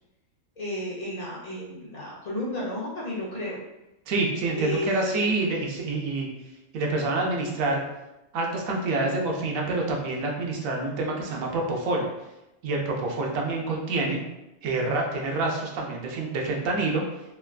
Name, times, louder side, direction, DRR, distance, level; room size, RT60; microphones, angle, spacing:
voice 1, 0.6-3.6 4.5-5.3, left 1 dB, 55° left, -5 dB, 0.4 m, -32 dB
voice 2, 4.1-6.3 6.7-7.8 8.3-12.0 12.6-14.2 14.6-17.0, right 2 dB, 90° right, 0 dB, 1.0 m, -27 dB
3.2 x 2.2 x 2.2 m, 0.93 s
omnidirectional pair, 1.4 m